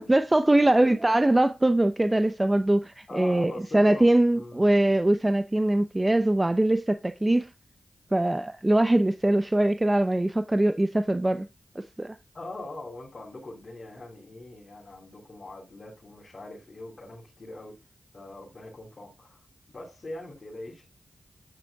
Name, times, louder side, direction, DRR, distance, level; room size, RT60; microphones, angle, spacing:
voice 1, 0.0-7.5 8.1-11.5 12.0-12.2, right 1 dB, 20° right, 0.7 m, -22 dB
voice 2, 0.6-1.0 3.1-4.1 4.3-4.7 12.3-17.8 18.1-19.4 19.7-20.8, left 2 dB, 50° left, 3.8 m, -41 dB
9.2 x 7.6 x 2.4 m
cardioid pair, 45°, 0 cm